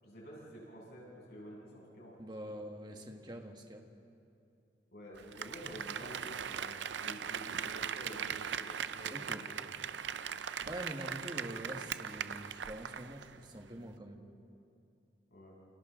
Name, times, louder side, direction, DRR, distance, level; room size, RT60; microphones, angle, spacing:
voice 1, 0.0-3.0 4.9-9.9 15.3-15.6, equal, 65° left, -4 dB, 7.4 m, -50 dB
voice 2, 2.2-3.8 9.1-9.5 10.7-14.2, right 1 dB, 25° right, 3 dB, 1.7 m, -45 dB
Applause, 5.2-13.4 13.7-13.8, right 8 dB, 90° right, 0.6 m, -40 dB
30.0 x 28.5 x 3.9 m, 2.5 s
head